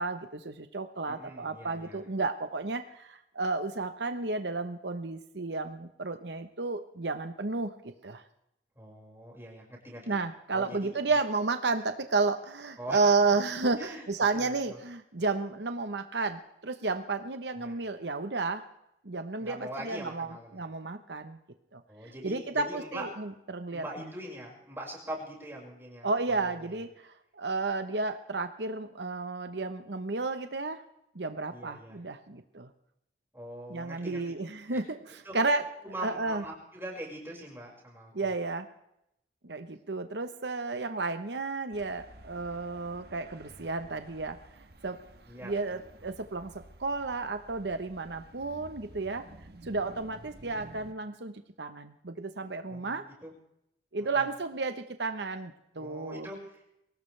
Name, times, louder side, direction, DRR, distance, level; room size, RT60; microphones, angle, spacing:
voice 1, 0.0-7.7 8.0-8.2 10.1-18.6 19.0-21.4 21.7-24.1 26.0-30.8 31.1-32.7 33.7-35.7 36.0-36.4 38.1-38.7 39.4-44.4 44.8-45.0 45.4-46.5 46.8-49.2 49.6-51.3 51.6-53.0 53.9-56.3, right 3 dB, 80° right, 8 dB, 1.0 m, -32 dB
voice 2, 1.1-2.0 8.8-10.2 10.5-11.0 12.8-13.0 13.8-14.1 14.3-14.8 17.6-17.8 19.4-20.6 21.9-23.1 23.7-26.1 31.5-32.0 33.3-34.2 34.7-34.8 35.2-35.4 35.8-38.3 45.3-46.1 52.7-53.3 54.0-54.3 55.8-56.7, right 1 dB, 15° right, -3 dB, 5.5 m, -42 dB
sound 1, 41.7-50.9, right 1 dB, 65° right, 1.3 m, -53 dB
23.5 x 18.0 x 3.4 m, 0.80 s
head